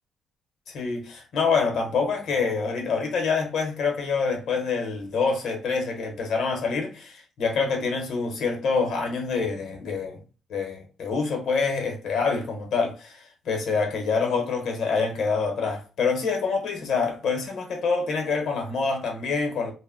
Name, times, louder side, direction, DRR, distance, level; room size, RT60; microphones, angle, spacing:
voice 1, 0.7-10.2 10.5-19.7, left 4 dB, 70° left, 0.8 m, -26 dB
2.1 x 2.1 x 3.6 m
cardioid pair, 90°, 0 cm